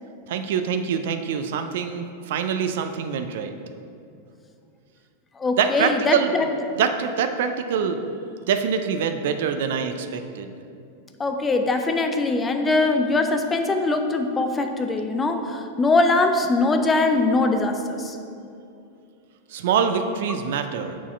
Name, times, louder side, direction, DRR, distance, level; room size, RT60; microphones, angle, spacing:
voice 1, 0.3-3.5 5.6-6.3 6.8-8.0 8.5-10.5 19.5-21.0, right 7 dB, 55° right, 7 dB, 0.3 m, -24 dB
voice 2, 5.4-6.5 11.2-18.2, left 3 dB, 15° left, 6 dB, 0.4 m, -22 dB
4.6 x 4.2 x 5.6 m, 2.5 s
figure-of-eight pair, 90°, 0 cm